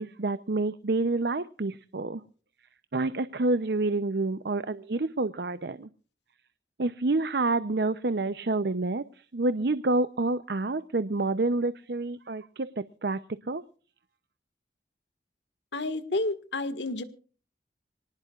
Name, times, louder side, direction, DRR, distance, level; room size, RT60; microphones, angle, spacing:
voice 1, 0.0-2.2 2.9-5.9 6.8-13.6, right 2 dB, 65° right, 13 dB, 0.7 m, -28 dB
voice 2, 15.7-17.0, left 2 dB, 90° left, 12 dB, 1.8 m, -30 dB
25.5 x 19.0 x 2.4 m, 0.40 s
head